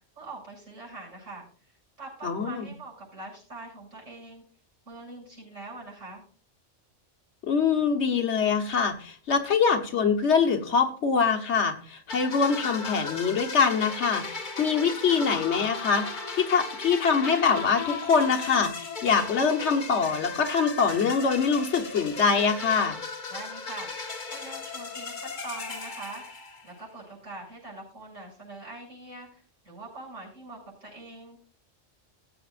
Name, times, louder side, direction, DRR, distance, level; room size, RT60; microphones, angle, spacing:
voice 1, 0.2-4.4 4.9-6.2 23.3-31.4, right 2 dB, 85° right, -3 dB, 7.5 m, -43 dB
voice 2, 2.2-2.7 7.4-14.2 14.6-16.1 16.3-23.0, left 5 dB, 65° left, 4 dB, 1.5 m, -24 dB
sound 1, 12.1-26.9, left 4 dB, 40° left, 1.2 m, -36 dB
20.0 x 8.2 x 2.5 m, 0.42 s
omnidirectional pair, 1.3 m